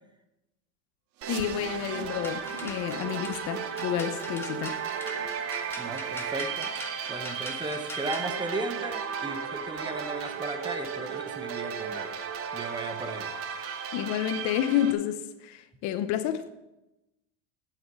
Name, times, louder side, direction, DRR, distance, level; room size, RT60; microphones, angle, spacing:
sound 1, 1.1-6.7 7.1-7.2 7.7-7.8 8.4-8.5 9.1-9.2, right 8 dB, 70° right, 1.4 m, -44 dB
sound 2, 1.2-14.9, right 7 dB, 35° right, 1.2 m, -35 dB
voice 1, 1.3-4.8 13.9-16.5, left 11 dB, 45° left, 0.8 m, -30 dB
sound 3, 2.1-8.3, left 2 dB, 5° left, 1.3 m, -44 dB
voice 2, 5.8-6.7 7.1-12.1 12.5-13.3, right 2 dB, 10° right, 0.8 m, -36 dB
9.1 x 7.8 x 6.8 m
supercardioid pair, 130°, 39 cm